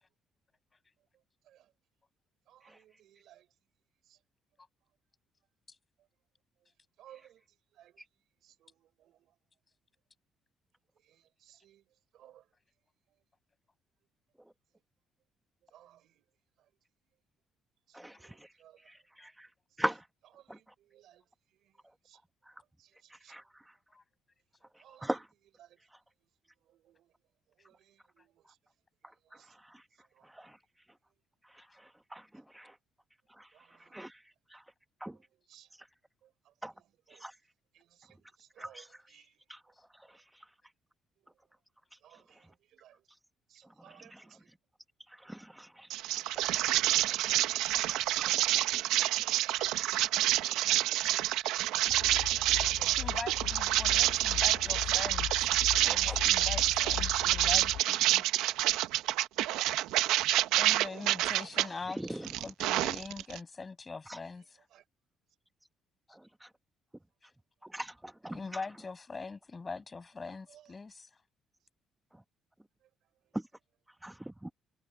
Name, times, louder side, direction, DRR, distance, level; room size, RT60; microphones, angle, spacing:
voice 1, 2.5-3.5 4.1-4.2 7.0-7.4 7.7-7.9 8.4-9.3 11.0-11.8 12.1-12.5 15.7-16.2 17.9-18.8 20.4-21.2 21.6-21.7 22.0-22.2 22.8-23.4 24.8-25.2 25.6-25.8 26.7-27.1 27.6-28.6 29.3-29.5 30.1-30.3 33.5-34.0 35.1-35.2 35.5-35.7 36.2-37.2 37.7-39.4 42.0-43.0 43.5-44.5 46.7-47.2 52.7-53.1 54.0-54.1 64.7-64.8 70.5-70.7, right 12 dB, 75° right, 4.4 m, -60 dB
voice 2, 17.9-18.5 18.9-19.5 19.8-20.0 23.3-23.4 25.0-25.2 30.4-30.5 32.1-32.2 32.5-32.7 33.4-33.5 33.9-34.2 34.5-34.6 35.0-35.1 36.6-36.7 37.1-37.3 38.6-38.9 39.5-39.6 44.1-44.2 45.2-45.9 48.2-48.3 49.0-49.1 49.7-49.9 50.4-50.5 51.4-51.5 55.8-56.2 62.0-62.3 64.1-64.2 66.4-66.5 67.7-67.9 68.2-68.4 74.0-74.1 74.4-74.5, right 1 dB, 5° right, 1.4 m, -39 dB
sound 1, 45.9-61.7 62.1-63.4, right 15 dB, 90° right, 0.9 m, -28 dB
sound 2, 51.9-57.8, left 12 dB, 80° left, 2.5 m, -40 dB
voice 3, 53.0-55.5 55.8-58.3 60.6-64.6 68.3-71.1, left 4 dB, 25° left, 6.2 m, -43 dB
cardioid pair, 100°, 0 cm